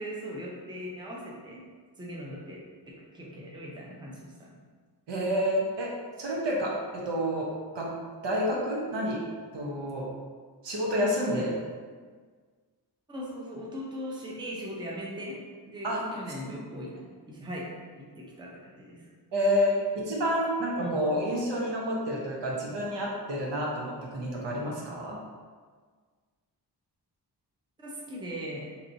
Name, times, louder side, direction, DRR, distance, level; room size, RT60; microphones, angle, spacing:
voice 1, 0.0-1.6 2.0-2.6 2.9-4.6 13.1-19.1 20.8-21.0 27.8-28.7, equal, 10° right, -3 dB, 0.5 m, -39 dB
voice 2, 5.1-5.9 6.2-7.5 7.7-7.9 8.2-9.2 9.5-10.1 10.6-11.5 15.8-16.0 19.3-25.2, equal, 90° right, -3 dB, 0.9 m, -29 dB
4.2 x 2.9 x 2.6 m, 1.6 s
wide cardioid pair, 160°, 41 cm